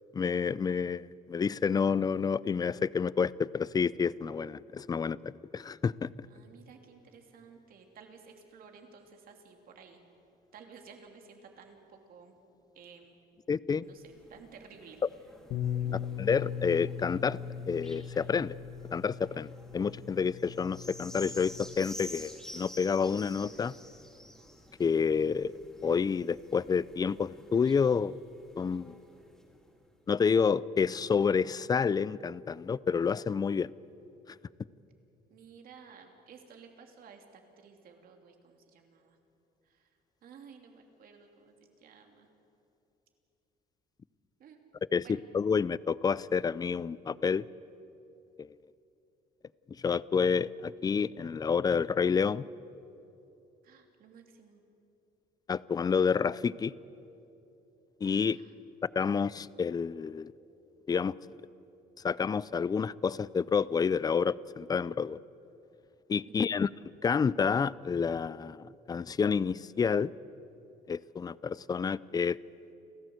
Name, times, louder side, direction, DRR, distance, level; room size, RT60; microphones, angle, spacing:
voice 1, 0.1-6.3 13.5-13.8 15.9-17.4 17.7-18.5 18.9-23.7 24.8-25.5 25.8-28.2 28.6-28.9 30.1-33.7 44.9-45.0 45.3-47.5 48.4-48.5 49.8-52.4 55.5-56.7 58.0-58.4 59.0-60.3 60.9-61.1 62.0-65.2 66.1-66.7 67.0-70.1 70.9-72.4, left 6 dB, 25° left, 20 dB, 0.4 m, -29 dB
voice 2, 6.3-10.0 10.5-12.4 12.7-13.2 13.8-15.0 15.8-16.0 35.3-39.2 39.6-39.9 40.2-42.3 44.4-44.6 45.0-45.2 53.6-54.6 58.2-58.6 66.2-66.6, right 6 dB, 60° right, 4 dB, 3.0 m, -54 dB
sound 1, 13.9-29.7 30.3-30.4, equal, 5° left, 3.6 m, -51 dB
Bass guitar, 15.5-21.8, left 8 dB, 75° left, 1.3 m, -39 dB
29.5 x 14.0 x 7.9 m, 2.8 s
cardioid pair, 110°, 17 cm